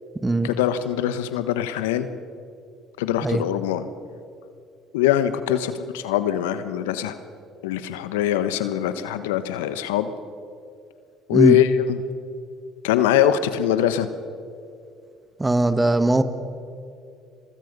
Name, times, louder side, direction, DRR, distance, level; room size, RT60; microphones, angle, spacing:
voice 1, 0.4-2.1 3.0-3.9 4.9-7.1 7.6-10.1 11.3-12.0 12.8-14.1, left 11 dB, 85° left, 11 dB, 1.2 m, -22 dB
voice 2, 15.4-16.2, right 2 dB, 15° right, 11 dB, 1.8 m, -19 dB
29.5 x 22.5 x 5.4 m, 2.5 s
hypercardioid pair, 65°, 0 cm